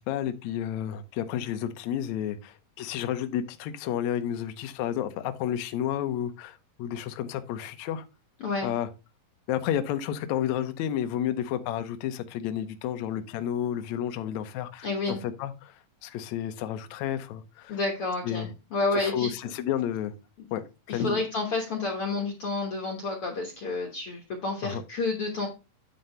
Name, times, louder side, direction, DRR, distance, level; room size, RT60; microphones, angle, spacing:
voice 1, 0.0-8.1 8.6-8.9 9.5-17.8 18.2-18.5 18.9-20.1 20.5-21.2 24.6-24.8, left 10 dB, 70° left, 9 dB, 1.9 m, -31 dB
voice 2, 14.8-15.2 17.7-19.3 20.4-20.5 20.9-25.5, left 3 dB, 55° left, 2 dB, 1.8 m, -30 dB
9.4 x 3.9 x 5.4 m, 0.29 s
omnidirectional pair, 3.9 m